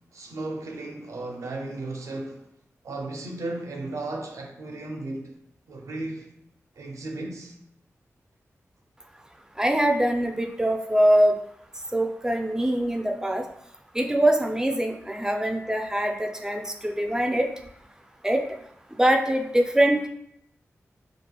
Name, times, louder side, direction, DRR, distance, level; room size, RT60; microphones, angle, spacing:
voice 1, 0.1-2.4 2.8-5.3 5.7-6.3 6.8-7.6, right 2 dB, 75° right, 0.4 m, -35 dB
voice 2, 9.6-11.3 11.9-13.4 14.0-17.5 18.2-18.4 19.0-20.1, right 1 dB, 10° right, 0.4 m, -23 dB
2.8 x 2.4 x 2.2 m
cardioid pair, 50°, 5 cm